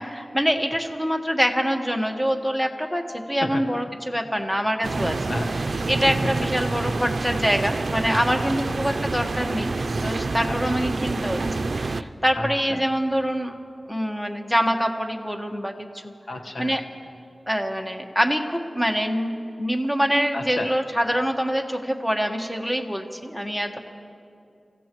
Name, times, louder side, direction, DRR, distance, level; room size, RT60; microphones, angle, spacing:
voice 1, 0.0-5.2 5.9-9.7 10.0-11.4 11.8-13.5 13.9-16.1 16.6-16.8 17.5-19.3 19.6-23.8, equal, 5° left, 4 dB, 1.4 m, -25 dB
sound 1, 4.8-12.0, right 3 dB, 75° right, 0.4 m, -27 dB
voice 2, 5.0-5.5 6.1-6.5 8.0-8.1 8.9-9.0 10.5-10.9 12.3-12.8 16.3-16.7 20.3-20.7 23.7-23.8, left 2 dB, 75° left, 5 dB, 1.2 m, -32 dB
29.5 x 15.5 x 3.1 m, 2.6 s
wide cardioid pair, 55°, 0 cm